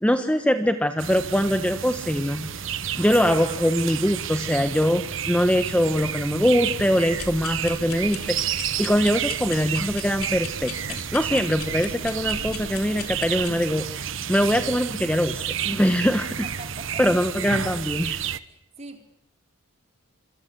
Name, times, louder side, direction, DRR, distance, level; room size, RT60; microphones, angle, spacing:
voice 1, 0.0-2.7 3.0-16.3 17.0-18.2, equal, 5° left, 8 dB, 1.2 m, -23 dB
sound 1, 1.0-18.4, right 8 dB, 65° right, 1.2 m, -31 dB
sound 2, 7.1-13.5, left 6 dB, 85° left, 3.4 m, -39 dB
voice 2, 15.9-17.0 18.5-19.0, right 2 dB, 30° right, 4 dB, 3.9 m, -43 dB
27.5 x 26.0 x 8.3 m, 0.71 s
head